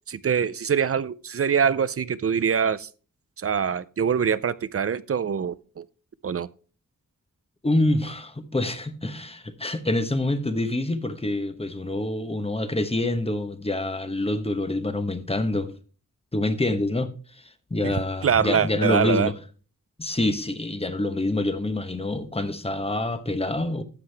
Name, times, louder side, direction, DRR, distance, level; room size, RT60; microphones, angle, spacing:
voice 1, 0.1-2.9 3.4-5.8 6.2-6.5 17.8-19.3, right 7 dB, 45° right, 0.5 m, -24 dB
voice 2, 7.6-15.7 16.3-19.4 20.0-23.8, left 2 dB, 20° left, 1.0 m, -26 dB
12.0 x 7.7 x 3.3 m
wide cardioid pair, 105°, 32 cm